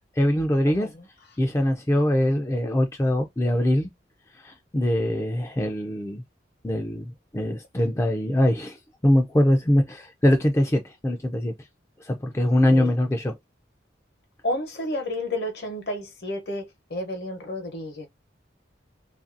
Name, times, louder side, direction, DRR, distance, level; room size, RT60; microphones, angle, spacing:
voice 1, 0.2-0.9 1.4-3.9 4.4-6.2 6.6-8.8 9.0-11.5 12.0-13.4, left 1 dB, 15° left, 0.3 m, -22 dB
voice 2, 14.4-18.1, left 1 dB, 60° left, 0.8 m, -31 dB
2.7 x 2.5 x 2.6 m
head